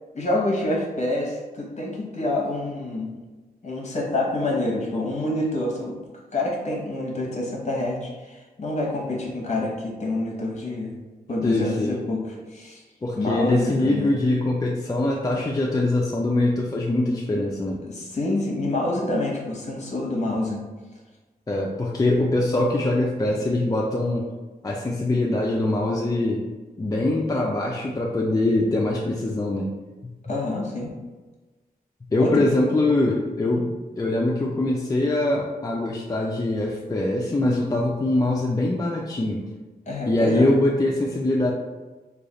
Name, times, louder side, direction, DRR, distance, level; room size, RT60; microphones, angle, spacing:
voice 1, 0.1-3.1 3.6-6.0 6.3-10.9 11.3-12.8 13.1-14.1 17.9-20.6 30.3-30.9 32.2-32.6 33.4-33.6 39.9-40.5, left 1 dB, 45° left, -2 dB, 0.9 m, -27 dB
voice 2, 11.4-12.0 13.0-17.8 21.5-24.3 24.6-26.5 26.8-29.7 32.1-33.7 34.0-39.5 40.1-41.5, left 2 dB, 25° left, -2 dB, 0.3 m, -23 dB
3.3 x 2.3 x 3.8 m, 1.2 s
wide cardioid pair, 120°, 16 cm